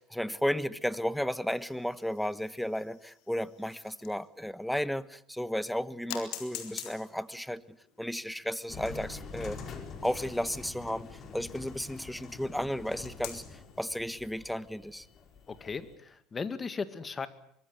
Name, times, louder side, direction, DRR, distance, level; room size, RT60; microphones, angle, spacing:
voice 1, 0.0-7.6 8.0-9.6 10.0-15.1, equal, 5° left, 17 dB, 1.2 m, -34 dB
sound 1, 1.5-4.4 4.9-5.0 6.1-12.1 13.0-13.7, left 12 dB, 65° left, 4.0 m, -47 dB
sound 2, 8.7-16.0, left 5 dB, 45° left, 4.9 m, -46 dB
voice 2, 15.5-17.3, left 5 dB, 30° left, 12 dB, 2.1 m, -37 dB
24.5 x 21.0 x 8.2 m, 0.67 s
hypercardioid pair, 75°, 0 cm